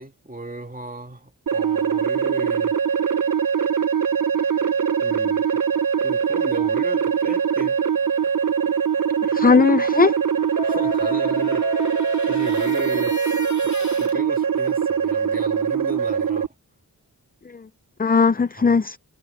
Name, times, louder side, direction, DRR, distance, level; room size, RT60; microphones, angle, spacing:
voice 1, 0.0-2.8 5.0-5.5 6.0-7.8 10.6-11.8 12.3-13.2 14.0-16.5 18.6-18.8, right 1 dB, 20° right, 2.3 m, -35 dB
sound 1, 1.5-16.5, right 7 dB, 55° right, 0.9 m, -22 dB
voice 2, 9.2-10.2 17.5-17.6 18.0-19.0, left 5 dB, 25° left, 0.5 m, -18 dB
sound 2, 10.6-13.4, left 13 dB, 75° left, 3.2 m, -35 dB
sound 3, 10.6-14.2, left 2 dB, 45° left, 2.6 m, -37 dB
wide cardioid pair, 70°, 39 cm